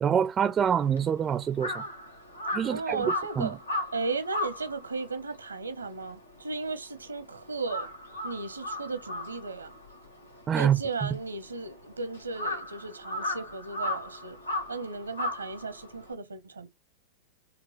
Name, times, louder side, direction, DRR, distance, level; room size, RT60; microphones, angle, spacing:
voice 1, 0.0-1.8 2.5-3.0 3.4-3.5 10.5-10.8, right 8 dB, 25° right, 0.5 m, -25 dB
Crow, 0.7-7.2 7.5-16.1, left 1 dB, 85° left, 1.3 m, -36 dB
voice 2, 2.6-3.6 3.9-7.9 8.2-9.7 10.5-14.4 14.7-16.7, right 4 dB, 80° right, 0.9 m, -35 dB
5.0 x 2.9 x 3.1 m
figure-of-eight pair, 95°, 0 cm